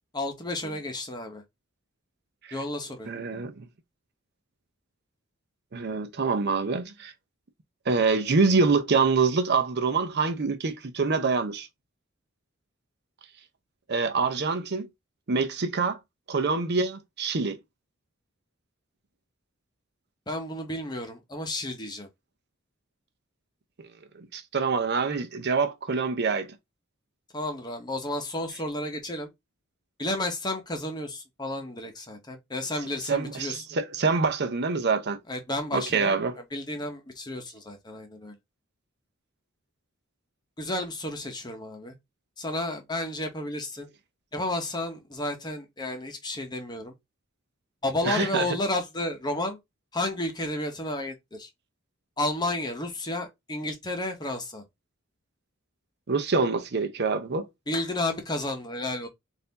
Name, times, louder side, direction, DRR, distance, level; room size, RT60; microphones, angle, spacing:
voice 1, 0.1-1.4 2.5-3.1 20.3-22.1 27.3-29.3 30.0-33.6 35.3-36.2 36.5-38.4 40.6-41.9 42.4-43.9 44.3-46.9 47.8-49.6 49.9-51.5 52.2-54.6 57.7-59.1, left 1 dB, 20° left, 1.0 m, -32 dB
voice 2, 3.1-3.7 5.7-7.1 7.9-11.7 13.9-14.9 15.3-16.0 16.3-17.6 24.2-26.5 33.1-35.2 35.7-36.3 48.0-48.5 56.1-57.5, right 4 dB, 55° right, 0.7 m, -25 dB
4.0 x 2.7 x 4.0 m
head